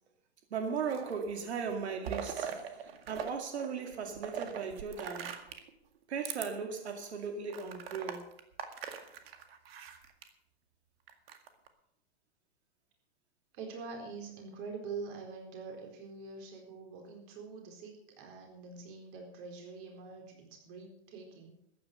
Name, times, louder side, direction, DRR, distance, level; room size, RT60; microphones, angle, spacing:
voice 1, 0.5-5.4 6.1-8.3, right 5 dB, 90° right, 5 dB, 2.3 m, -37 dB
sound 1, 0.7-1.3 1.7-3.3 3.6-5.7 6.2-6.5 6.9-7.0 7.5-10.3 11.1-11.7, right 8 dB, 65° right, 2.0 m, -41 dB
voice 2, 13.5-20.3 20.6-21.5, right 4 dB, 35° right, 2 dB, 4.2 m, -45 dB
13.5 x 9.8 x 6.7 m, 0.76 s
hypercardioid pair, 155°, 32 cm